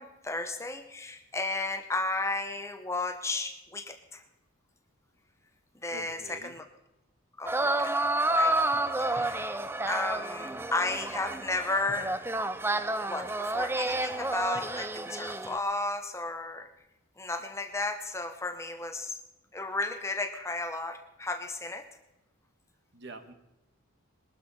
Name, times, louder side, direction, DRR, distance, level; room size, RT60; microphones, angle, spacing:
voice 1, 0.0-4.2 5.8-6.7 7.4-8.0 8.3-8.6 9.0-9.6 9.9-12.1 13.1-16.7 17.2-19.2 19.5-21.9, left 2 dB, 15° left, 7 dB, 0.9 m, -34 dB
voice 2, 5.9-6.5 22.9-23.3, right 2 dB, 50° right, 7 dB, 1.6 m, -45 dB
sound 1, 7.4-15.6, right 2 dB, 10° right, 0.5 m, -30 dB
21.0 x 12.5 x 4.3 m, 0.93 s
head